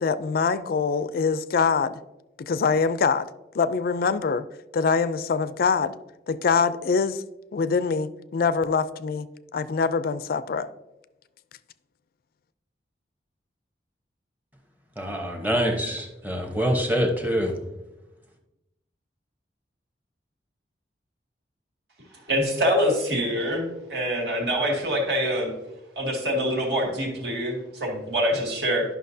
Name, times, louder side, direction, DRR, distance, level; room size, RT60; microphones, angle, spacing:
voice 1, 0.0-2.0 2.4-3.3 3.5-4.5 4.7-5.9 6.3-7.2 7.5-9.3 9.5-10.7, left 5 dB, 55° left, 0.4 m, -24 dB
voice 2, 15.0-17.6, equal, 10° right, 1.0 m, -25 dB
voice 3, 22.3-25.5 26.0-28.8, equal, 65° right, 2.1 m, -25 dB
11.5 x 5.8 x 2.7 m
head